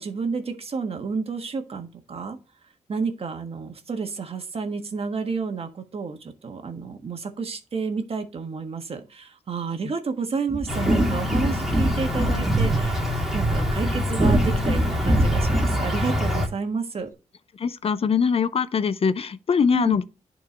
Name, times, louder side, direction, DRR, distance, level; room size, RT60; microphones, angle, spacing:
voice 1, 0.0-2.4 2.9-13.0 13.3-17.1 19.7-20.0, right 4 dB, 50° right, 1.4 m, -30 dB
sound 1, 10.5-15.9, right 1 dB, 20° right, 1.4 m, -24 dB
Insect, 10.7-16.5, left 1 dB, ahead, 2.6 m, -26 dB
voice 2, 17.6-20.0, left 6 dB, 50° left, 0.6 m, -22 dB
10.5 x 4.5 x 3.3 m
cardioid pair, 60°, 13 cm